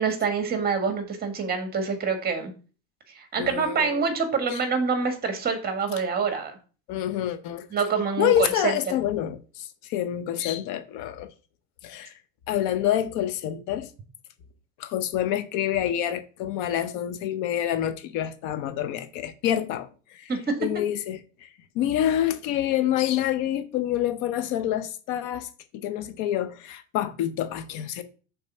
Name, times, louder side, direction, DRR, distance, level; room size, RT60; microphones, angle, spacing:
voice 1, 0.0-2.5 3.1-6.6 7.7-8.7 20.3-20.6, right 5 dB, 30° right, 1.7 m, -26 dB
voice 2, 3.4-4.1 4.5-4.6 6.9-7.7 8.2-11.3 11.8-12.1 12.5-13.9 14.8-20.3 20.6-25.5 25.7-28.0, left 11 dB, 65° left, 0.9 m, -27 dB
5.3 x 4.2 x 5.5 m
supercardioid pair, 120°, 33 cm